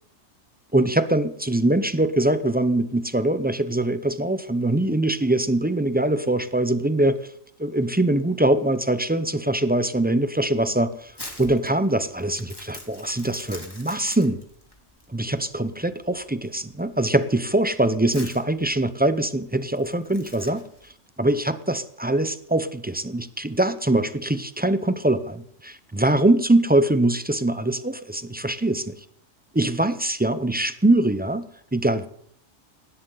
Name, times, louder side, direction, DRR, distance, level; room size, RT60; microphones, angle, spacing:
voice 1, 0.7-7.2 7.6-11.1 11.4-14.4 15.1-20.6 21.2-29.0 29.5-31.4 31.7-32.1, right 1 dB, 15° right, 12 dB, 0.3 m, -23 dB
Crumpling crinkling, 10.4-20.9, left 1 dB, 15° left, 2.9 m, -44 dB
19.5 x 16.5 x 4.0 m, 0.66 s
omnidirectional pair, 1.4 m